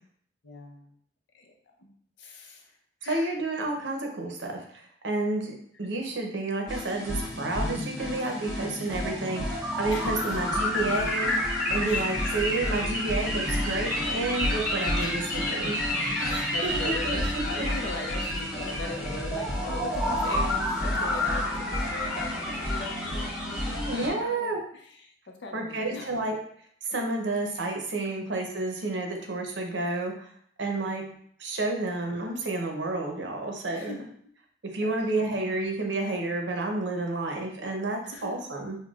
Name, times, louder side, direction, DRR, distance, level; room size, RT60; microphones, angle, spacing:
voice 1, 0.4-0.9 1.3-1.5 1.8-2.8 3.0-3.3 9.9-10.3 11.8-12.3 15.0-15.6 16.3-26.2 30.7-31.1 33.7-34.1 34.8-35.3 38.1-38.3, left 2 dB, 65° left, 1 dB, 0.6 m, -40 dB
voice 2, 3.1-16.3 16.6-17.2 17.6-17.7 23.8-24.6 25.5-26.4 26.8-30.3 30.6-31.0 31.4-33.9 34.7-38.8, right 2 dB, 70° right, 2 dB, 0.7 m, -30 dB
sound 1, 6.7-24.1, left 1 dB, ahead, 1.4 m, -29 dB
5.9 x 2.2 x 2.4 m, 0.63 s
head